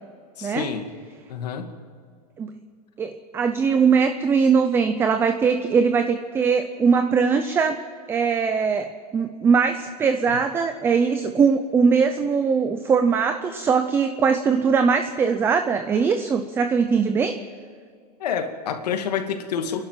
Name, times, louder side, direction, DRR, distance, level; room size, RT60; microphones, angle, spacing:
voice 1, 0.4-0.9 1.3-1.7 10.3-10.4 18.2-19.9, left 7 dB, 90° left, 5 dB, 2.4 m, -28 dB
voice 2, 3.0-7.8 8.1-8.9 9.1-17.4, right 5 dB, 10° right, 8 dB, 0.6 m, -21 dB
30.0 x 11.5 x 7.5 m, 2.1 s
supercardioid pair, 165°, 20 cm